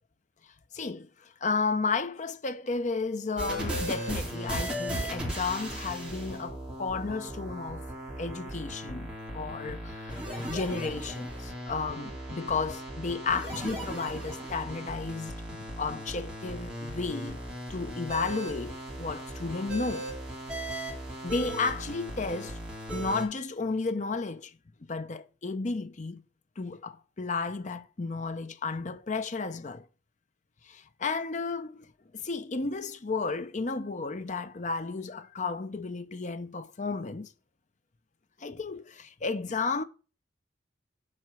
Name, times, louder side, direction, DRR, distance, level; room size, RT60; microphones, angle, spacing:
voice 1, 0.7-7.9 8.2-10.2 10.5-17.4 17.7-20.1 21.2-22.6 22.9-24.5 24.9-26.2 26.6-29.9 30.7-31.9 32.1-37.3 38.4-39.8, left 4 dB, 40° left, 0.6 m, -33 dB
sound 1, 3.4-23.2, right 1 dB, 5° right, 2.8 m, -37 dB
7.6 x 4.5 x 6.0 m
head